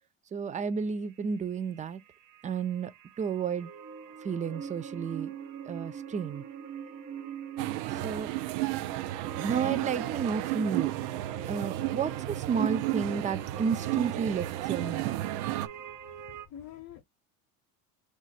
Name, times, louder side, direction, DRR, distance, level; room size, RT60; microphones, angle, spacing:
voice 1, 0.3-2.0 2.4-2.9 3.2-3.7 4.2-5.3 5.6-6.4 7.9-8.3 9.4-10.9 11.5-15.2, right 6 dB, 20° right, 0.4 m, -32 dB
sound 1, 0.7-0.8 1.1-16.5, right 6 dB, 40° right, 0.8 m, -44 dB
sound 2, 7.6-15.7, right 17 dB, 70° right, 0.6 m, -33 dB
voice 2, 15.4-17.0, left 10 dB, 50° left, 0.7 m, -49 dB
4.8 x 2.4 x 4.1 m
hypercardioid pair, 80°, 46 cm